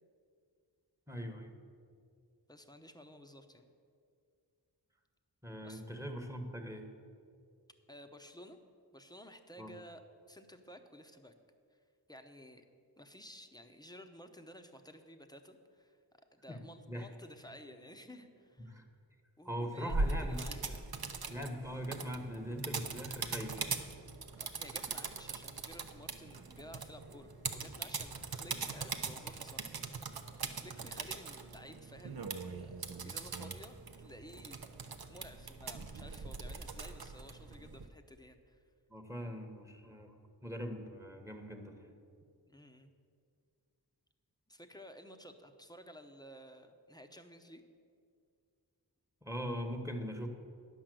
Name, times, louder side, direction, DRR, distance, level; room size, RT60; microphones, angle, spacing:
voice 1, 1.1-1.5 5.4-6.9 9.6-9.7 16.5-17.1 18.7-18.8 19.4-20.4 21.3-23.7 38.9-40.1 40.4-41.9 49.2-50.3, equal, 5° right, 5 dB, 1.2 m, -41 dB
voice 2, 2.5-3.7 5.6-5.8 7.9-8.6 8.9-10.0 10.3-11.3 11.7-11.8 12.1-12.6 13.0-16.0 16.3-18.8 19.4-20.8 24.4-29.9 30.5-34.7 35.1-38.6 42.5-42.9 44.5-47.6, equal, 10° left, 6 dB, 0.8 m, -54 dB
sound 1, 19.9-37.9, right 4 dB, 60° right, 0.8 m, -41 dB
10.5 x 5.7 x 7.7 m, 2.2 s
wide cardioid pair, 45°, 41 cm